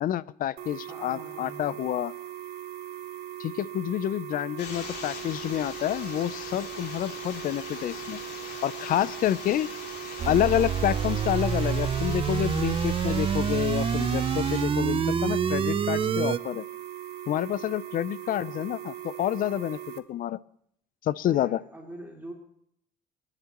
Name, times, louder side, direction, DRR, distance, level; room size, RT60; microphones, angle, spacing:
voice 1, 0.0-2.1 3.4-8.2 8.6-9.7 10.3-16.6 17.3-19.8 20.1-20.4 21.0-21.6, left 12 dB, 55° left, 19 dB, 0.5 m, -28 dB
sound 1, 0.6-20.0, right 11 dB, 70° right, 1.1 m, -40 dB
voice 2, 0.9-1.9 21.2-22.3, right 1 dB, 10° right, -1 dB, 2.7 m, -43 dB
sound 2, 4.6-14.6, left 5 dB, 75° left, 3.2 m, -42 dB
sound 3, 10.2-16.4, right 7 dB, 30° right, 0.5 m, -27 dB
24.5 x 10.5 x 3.0 m, 0.69 s
cardioid pair, 110°, 17 cm